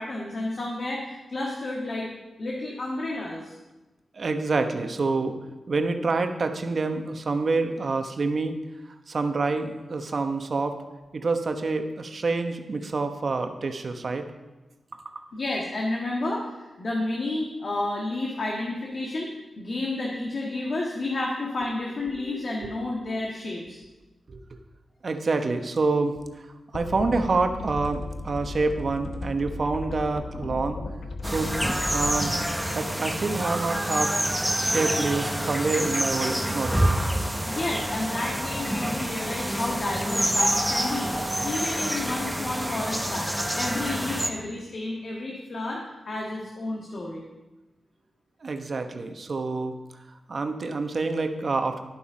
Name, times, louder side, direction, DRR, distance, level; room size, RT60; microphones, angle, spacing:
voice 1, 0.0-2.1 2.4-3.6 15.3-19.3 19.6-23.8 37.4-41.1 41.4-43.3 43.5-47.2, left 2 dB, 60° left, -2 dB, 1.6 m, -31 dB
voice 2, 4.1-5.4 5.7-8.6 9.1-10.8 11.1-14.3 14.9-15.2 22.2-22.4 24.3-24.4 25.0-26.5 26.7-30.8 31.2-31.6 31.9-32.4 32.7-34.2 34.6-36.9 48.4-49.7 50.3-51.8, right 3 dB, 55° right, 6 dB, 1.0 m, -27 dB
sound 1, 26.7-32.1, left 3 dB, 75° left, 0.9 m, -36 dB
sound 2, 31.2-44.3, equal, ahead, 1.0 m, -27 dB
11.0 x 7.2 x 5.0 m, 1.1 s
cardioid pair, 65°, 0 cm